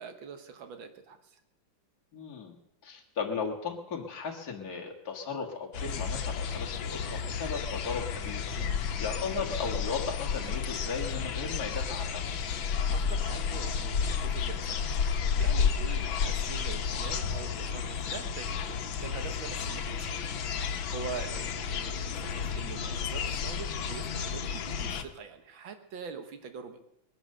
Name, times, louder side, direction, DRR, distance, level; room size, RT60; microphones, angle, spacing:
voice 1, 0.0-1.4 8.5-8.8 12.9-26.8, right 6 dB, 85° right, 7 dB, 2.0 m, -44 dB
voice 2, 2.1-2.6 2.8-8.6 9.0-12.4 16.0-16.2, left 5 dB, 50° left, 0 dB, 2.1 m, -36 dB
sound 1, 5.7-25.0, left 6 dB, 80° left, 1.8 m, -32 dB
20.5 x 10.5 x 6.6 m, 0.80 s
omnidirectional pair, 2.1 m